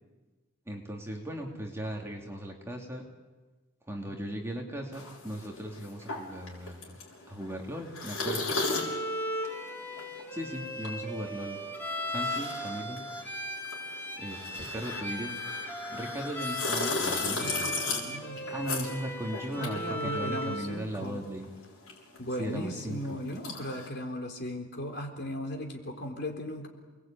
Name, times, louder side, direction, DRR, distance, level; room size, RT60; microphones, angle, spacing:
voice 1, 0.7-3.0 3.9-7.0 7.3-8.5 10.3-11.6 12.1-13.0 14.2-15.4 15.9-17.9 18.5-21.5 22.4-23.2, right 1 dB, 10° right, 0 dB, 2.7 m, -37 dB
sound 1, 4.9-20.7 21.0-23.9, left 3 dB, 65° left, 7.0 m, -36 dB
Bowed string instrument, 8.6-20.7, equal, 10° left, 3.4 m, -37 dB
voice 2, 17.3-18.8 19.5-21.2 22.2-26.7, equal, 50° left, 3 dB, 3.9 m, -37 dB
29.5 x 21.0 x 9.1 m, 1.2 s
head